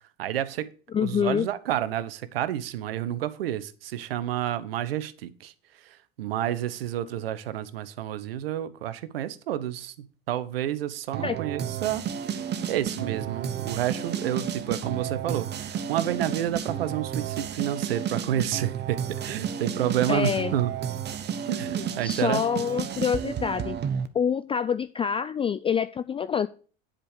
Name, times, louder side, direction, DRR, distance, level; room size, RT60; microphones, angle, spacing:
voice 1, 0.2-0.7 1.0-5.5 5.8-12.0 12.7-20.7 21.5-22.4, right 11 dB, 80° right, 0.9 m, -30 dB
voice 2, 0.9-1.5 11.2-11.4 20.1-20.5 22.0-23.8 24.1-26.5, left 7 dB, 20° left, 0.4 m, -26 dB
sound 1, 11.1-24.1, right 8 dB, 35° right, 1.1 m, -32 dB
10.0 x 5.2 x 6.5 m
hypercardioid pair, 85°, 29 cm